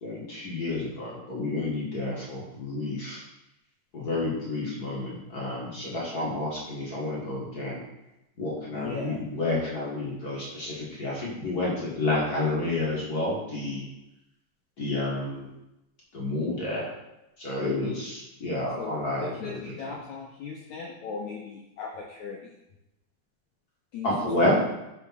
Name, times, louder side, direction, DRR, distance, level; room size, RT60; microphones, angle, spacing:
voice 1, 0.0-3.2 3.9-7.8 8.4-13.8 14.8-15.5 16.1-16.9 17.4-19.6 19.8-19.9 24.0-24.6, left 2 dB, 50° left, -5 dB, 1.1 m, -30 dB
voice 2, 8.7-9.2 17.8-18.1 18.8-22.5 23.9-24.6, left 5 dB, 85° left, 0 dB, 1.6 m, -38 dB
6.9 x 5.9 x 5.8 m, 0.92 s
omnidirectional pair, 4.6 m